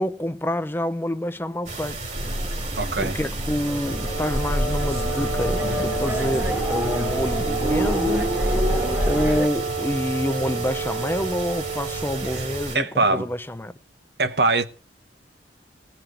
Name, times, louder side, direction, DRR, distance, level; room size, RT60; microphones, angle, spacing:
voice 1, 0.0-2.0 3.0-8.3 9.0-13.7, left 1 dB, 10° left, 0.6 m, -27 dB
sound 1, 1.7-12.8, right 2 dB, 45° right, 2.9 m, -34 dB
sound 2, 2.1-9.5, equal, 15° right, 1.7 m, -26 dB
voice 2, 2.8-3.2 12.3-12.4 12.7-13.3 14.2-14.7, right 3 dB, 65° right, 1.1 m, -22 dB
Wind instrument woodwind instrument, 3.7-13.0, right 5 dB, 80° right, 1.4 m, -31 dB
17.5 x 5.9 x 8.0 m
head